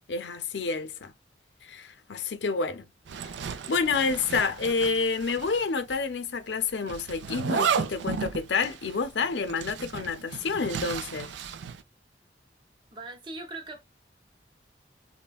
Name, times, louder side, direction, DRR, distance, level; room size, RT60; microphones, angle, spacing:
voice 1, 0.1-1.1 1.6-2.9 3.7-11.3, left 4 dB, 80° left, 0.6 m, -29 dB
Zipper (clothing), 3.1-5.6 5.9-6.0 6.9-11.8, right 6 dB, 85° right, 0.4 m, -33 dB
voice 2, 3.5-3.8 12.9-13.8, right 2 dB, 25° right, 0.6 m, -41 dB
3.2 x 2.1 x 2.2 m
head